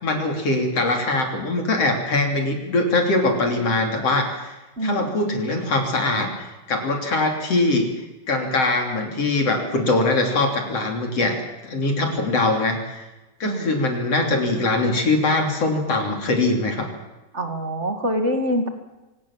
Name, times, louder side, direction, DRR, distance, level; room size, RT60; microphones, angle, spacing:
voice 1, 0.0-4.6 4.8-6.3 6.7-7.9 8.3-11.4 11.6-13.0 13.4-16.9, left 2 dB, 40° left, 3 dB, 3.8 m, -22 dB
voice 2, 4.8-5.1 13.4-13.7 17.3-18.7, equal, 40° right, 6 dB, 1.0 m, -25 dB
25.0 x 18.5 x 7.4 m, 1.1 s
omnidirectional pair, 4.9 m